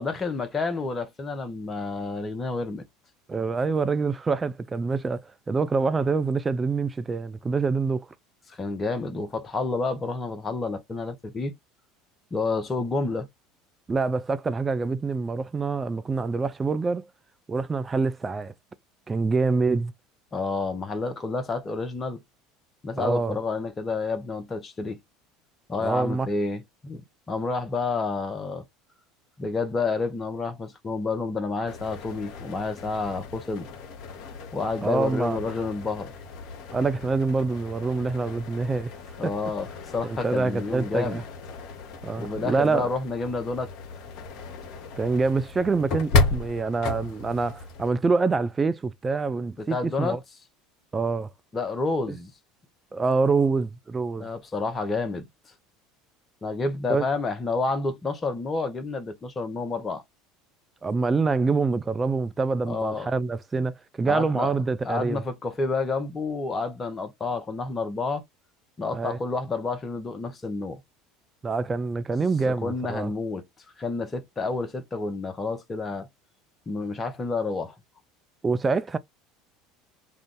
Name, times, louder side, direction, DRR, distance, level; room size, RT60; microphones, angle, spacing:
voice 1, 0.0-2.8 8.5-11.5 12.3-13.3 20.3-22.2 22.8-25.0 25.7-27.0 27.3-28.7 29.4-33.7 34.5-36.1 39.2-41.2 42.2-43.7 49.6-50.2 51.5-52.3 54.2-55.3 56.4-60.0 62.7-63.1 63.5-63.7 64.1-64.5 64.8-68.2 68.8-70.8 72.5-73.4 73.8-76.1 76.7-77.7, left 3 dB, 25° left, 0.8 m, -29 dB
voice 2, 3.3-8.1 13.9-17.1 17.5-18.5 19.1-19.9 23.0-23.4 25.8-26.3 34.8-35.4 36.7-38.9 39.2-39.3 40.0-41.2 42.0-42.9 45.0-50.2 50.9-51.3 52.1-52.2 52.9-54.3 56.9-57.0 60.8-65.2 68.9-69.2 71.4-73.1 78.4-79.0, right 4 dB, 25° right, 0.4 m, -26 dB
sound 1, 31.7-47.9, left 3 dB, 55° left, 0.9 m, -33 dB
2.6 x 2.4 x 3.6 m
hypercardioid pair, 70°, 0 cm